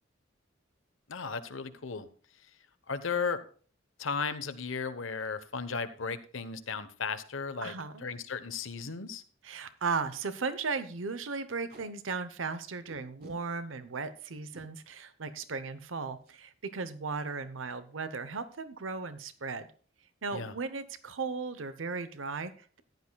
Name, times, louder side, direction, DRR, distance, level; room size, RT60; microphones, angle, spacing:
voice 1, 1.1-2.1 2.9-3.4 4.0-7.7 8.0-9.2 20.3-20.5, left 5 dB, 85° left, 11 dB, 1.0 m, -35 dB
voice 2, 7.6-8.0 9.4-19.7 20.2-22.8, right 4 dB, 85° right, 12 dB, 0.8 m, -36 dB
Packing tape duct tape, 8.5-8.6 8.8-8.9 9.4-9.5 9.8-10.0 10.3-10.5 11.5-11.9 12.9-13.4 14.3-14.7 16.2-16.4 16.7-16.9 17.2-17.6, equal, 50° right, 3.3 m, -53 dB
14.5 x 11.0 x 2.3 m, 0.42 s
head